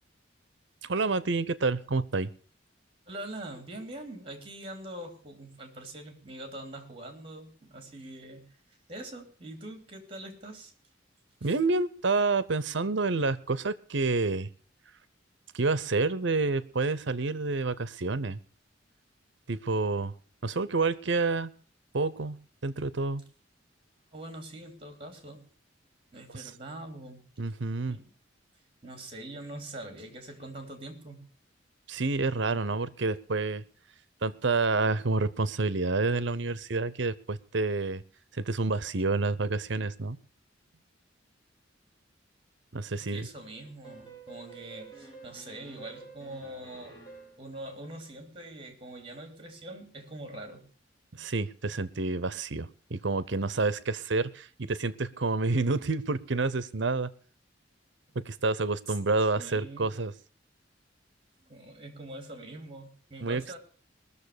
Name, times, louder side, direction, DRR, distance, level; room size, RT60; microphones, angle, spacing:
voice 1, 0.8-2.3 11.4-14.5 15.5-18.4 19.5-20.1 20.4-21.5 21.9-22.4 22.6-23.2 26.3-26.4 27.4-28.0 31.9-33.6 34.2-38.0 38.3-40.2 42.7-43.3 51.1-57.1 58.1-60.1 63.2-63.6, right 3 dB, 65° right, 17 dB, 0.8 m, -28 dB
voice 2, 3.1-8.5 8.9-10.7 11.4-11.6 24.1-25.5 26.1-27.2 27.9-28.1 28.8-31.2 42.9-47.0 47.4-50.6 59.3-60.0 61.4-63.6, right 1 dB, 30° right, 6 dB, 3.1 m, -43 dB
sound 1, 43.8-47.5, right 3 dB, 20° left, 4.3 m, -49 dB
20.0 x 7.0 x 6.7 m, 0.42 s
head